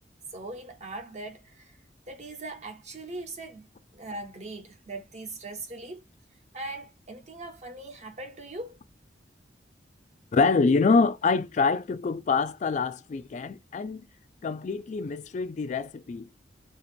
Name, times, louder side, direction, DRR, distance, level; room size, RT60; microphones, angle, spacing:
voice 1, 0.3-1.8 2.1-3.7 3.9-6.0 6.5-8.8, right 2 dB, 40° right, 1.0 m, -40 dB
voice 2, 10.3-14.0 14.4-16.3, left 4 dB, 40° left, 0.3 m, -25 dB
2.9 x 2.8 x 4.3 m
head